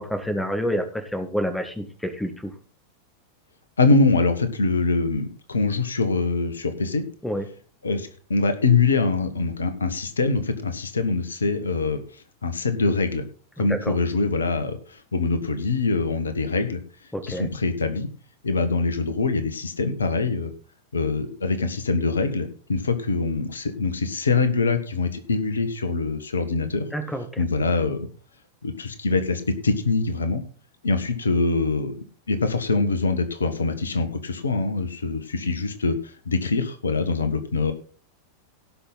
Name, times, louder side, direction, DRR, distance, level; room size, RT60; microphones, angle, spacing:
voice 1, 0.0-2.5 7.2-7.5 13.6-13.9 17.1-17.5 26.9-27.4, equal, 5° left, 8 dB, 1.7 m, -28 dB
voice 2, 3.8-7.0 7.8-13.2 13.6-16.8 17.2-18.1 18.4-20.5 20.9-26.8 27.4-28.1 28.6-30.4 30.8-31.9 32.3-37.7, left 3 dB, 70° left, 9 dB, 1.5 m, -24 dB
17.5 x 6.1 x 4.1 m, 0.40 s
figure-of-eight pair, 90°, 0 cm